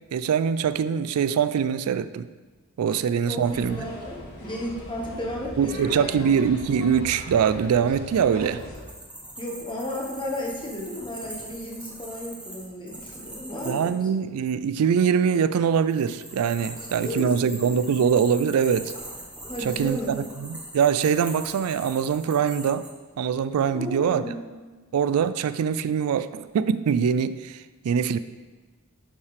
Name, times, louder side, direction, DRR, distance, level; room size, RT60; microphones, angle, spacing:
voice 1, 0.1-2.3 2.8-3.8 5.6-8.6 13.6-18.9 19.6-22.9 23.2-24.3 24.9-28.2, right 7 dB, 85° right, 14 dB, 0.3 m, -23 dB
voice 2, 3.3-6.3 8.3-8.5 9.4-14.0 16.8-17.6 19.4-20.2 23.7-24.5, left 1 dB, 20° left, -2 dB, 1.3 m, -34 dB
sound 1, 3.4-8.8, left 1 dB, 45° left, 2.5 m, -40 dB
sound 2, 8.6-13.9 15.7-22.9, right 1 dB, 5° right, 1.0 m, -42 dB
11.0 x 5.7 x 3.3 m, 1.3 s
head